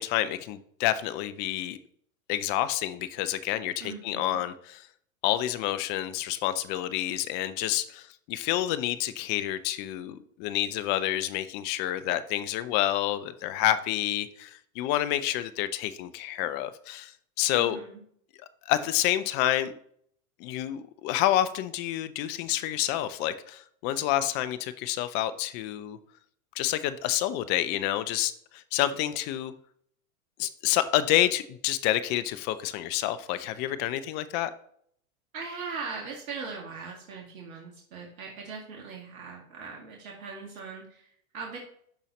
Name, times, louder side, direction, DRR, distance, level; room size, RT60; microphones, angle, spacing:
voice 1, 0.0-1.8 2.3-4.9 5.2-17.8 18.7-19.7 20.4-26.0 26.6-29.5 30.4-34.5, left 13 dB, 25° left, 13 dB, 0.3 m, -28 dB
voice 2, 3.8-4.4 17.5-18.0 35.3-41.6, right 4 dB, 70° right, -1 dB, 2.0 m, -40 dB
11.5 x 4.1 x 3.0 m, 0.64 s
hypercardioid pair, 105°, 43 cm